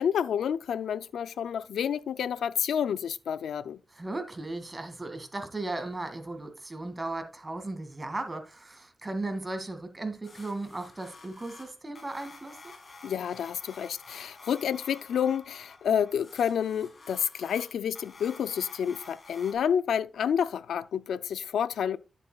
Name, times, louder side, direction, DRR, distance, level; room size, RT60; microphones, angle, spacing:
voice 1, 0.0-3.8 13.0-22.0, left 8 dB, 85° left, 0.4 m, -29 dB
voice 2, 3.9-12.7, right 2 dB, 30° right, 2.2 m, -36 dB
sound 1, 10.2-19.5, left 3 dB, 55° left, 3.6 m, -50 dB
10.5 x 8.3 x 2.3 m
supercardioid pair, 45°, 0 cm